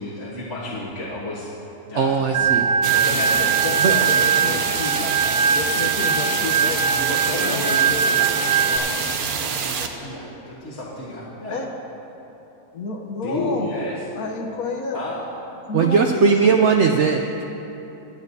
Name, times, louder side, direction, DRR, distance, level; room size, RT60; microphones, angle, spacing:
voice 1, 0.0-1.5 1.9-2.5 2.8-3.5 7.3-11.6 13.2-13.9 14.9-15.2, left 1 dB, 55° left, -7 dB, 1.7 m, -32 dB
voice 2, 1.9-2.8 3.8-4.1 15.7-17.4, right 5 dB, 65° right, 3 dB, 0.8 m, -19 dB
Organ, 2.3-8.8, right 7 dB, 25° right, 0.8 m, -21 dB
sound 1, 2.8-9.9, right 6 dB, 80° right, 1.3 m, -26 dB
voice 3, 3.6-5.2 5.5-8.0 11.5-11.7 12.7-13.7 14.1-15.0 15.7-17.0, left 3 dB, 80° left, 1 dB, 1.4 m, -30 dB
25.5 x 9.1 x 2.7 m, 3.0 s
omnidirectional pair, 1.5 m